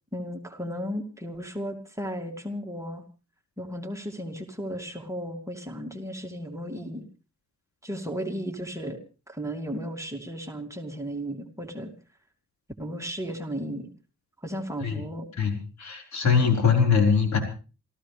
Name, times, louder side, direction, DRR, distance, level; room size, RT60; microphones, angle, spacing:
voice 1, 0.1-3.0 3.6-7.1 7.8-9.0 9.3-11.9 12.8-13.9 14.4-15.3, equal, 10° right, 2 dB, 2.5 m, -34 dB
voice 2, 15.4-17.4, left 6 dB, 70° left, 3 dB, 4.6 m, -22 dB
27.0 x 14.5 x 3.4 m, 0.35 s
cardioid pair, 90°, 29 cm